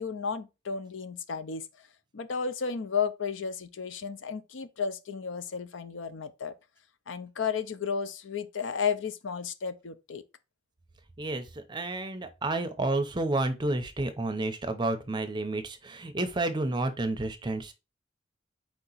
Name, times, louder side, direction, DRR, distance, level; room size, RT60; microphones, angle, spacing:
voice 1, 0.0-1.7 2.1-6.5 7.1-10.2, left 6 dB, 80° left, 0.5 m, -33 dB
voice 2, 11.2-17.7, right 2 dB, 25° right, 0.6 m, -30 dB
4.4 x 2.9 x 3.9 m
head